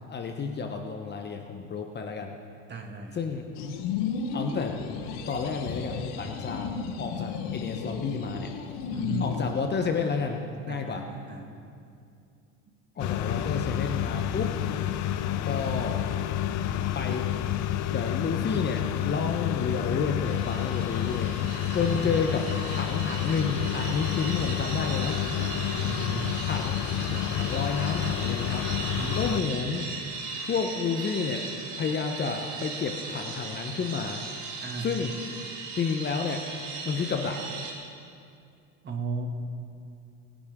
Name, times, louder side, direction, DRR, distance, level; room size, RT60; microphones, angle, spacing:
voice 1, 0.1-2.3 3.1-3.5 4.3-4.8 5.3-6.7 7.0-8.5 9.2-10.4 10.7-11.0 13.0-14.5 15.4-16.0 16.9-17.3 17.9-21.3 21.7-25.2 26.4-26.8 27.3-28.7 29.1-29.9 30.4-31.5 31.7-34.2 34.8-35.1 35.8-36.4 36.8-37.4, left 5 dB, 30° left, 4 dB, 1.0 m, -30 dB
voice 2, 2.7-3.2 8.9-9.3 10.7-11.5 13.3-13.5 21.7-22.1 25.3-26.4 27.0-27.3 28.8-29.2 34.6-34.9 38.8-39.3, right 4 dB, 30° right, 2 dB, 2.2 m, -36 dB
sound 1, 3.6-9.7, left 6 dB, 80° left, 1.4 m, -33 dB
sound 2, 13.0-29.4, left 11 dB, 55° left, 0.7 m, -29 dB
sound 3, 20.2-37.7, right 4 dB, 75° right, 3.4 m, -38 dB
27.0 x 10.5 x 3.7 m, 2.4 s
supercardioid pair, 110°, 36 cm